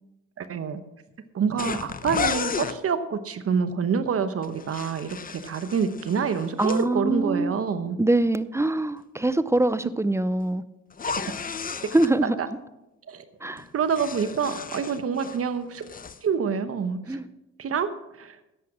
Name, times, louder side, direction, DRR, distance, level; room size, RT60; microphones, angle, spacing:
voice 1, 0.4-0.8 1.3-5.2 5.4-8.0 11.1-11.2 12.2-12.3 13.1-13.2 13.7-15.9 16.2-17.2 17.6-18.4, right 6 dB, 50° right, 1.0 m, -27 dB
sound 1, 1.6-2.8 4.4-6.8 10.9-12.1 13.6-15.4 15.7-16.2, left 6 dB, 30° left, 0.7 m, -33 dB
voice 2, 6.6-7.6 8.0-10.6 11.9-12.4 13.4-13.7 17.1-17.3, right 2 dB, 10° right, 0.6 m, -24 dB
11.0 x 8.4 x 6.3 m
cardioid pair, 90°, 30 cm